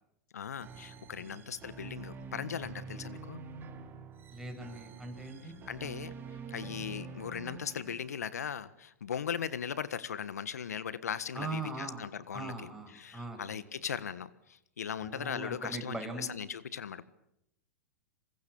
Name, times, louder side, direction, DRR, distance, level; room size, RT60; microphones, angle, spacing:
voice 1, 0.3-3.4 5.7-6.1 6.5-12.5 12.9-17.0, left 8 dB, 80° left, 16 dB, 1.5 m, -38 dB
sound 1, 0.6-8.3, right 5 dB, 25° right, 4.0 m, -46 dB
voice 2, 4.3-5.6 11.3-12.1 12.3-13.6 14.9-16.3, right 2 dB, 5° right, 3 dB, 7.6 m, -41 dB
27.5 x 24.0 x 7.1 m, 0.80 s
hypercardioid pair, 110°, 9 cm